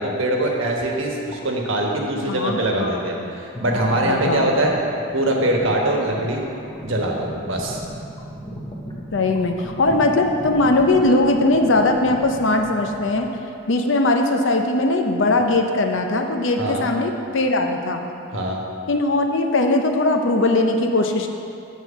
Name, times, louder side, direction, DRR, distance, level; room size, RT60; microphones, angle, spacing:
voice 1, 0.0-4.7 5.1-6.4 6.8-7.8 16.6-16.8 18.3-18.6, right 1 dB, 75° right, 0 dB, 1.2 m, -22 dB
sound 1, 1.3-1.4 3.5-13.4 15.3-15.9 16.7-16.8 17.3-17.5, equal, 20° left, 0.8 m, -36 dB
voice 2, 2.3-3.3 4.0-4.5 9.1-13.3 13.7-18.0 18.9-21.4, left 2 dB, 70° left, 4 dB, 0.7 m, -20 dB
8.4 x 4.5 x 6.9 m, 2.6 s
head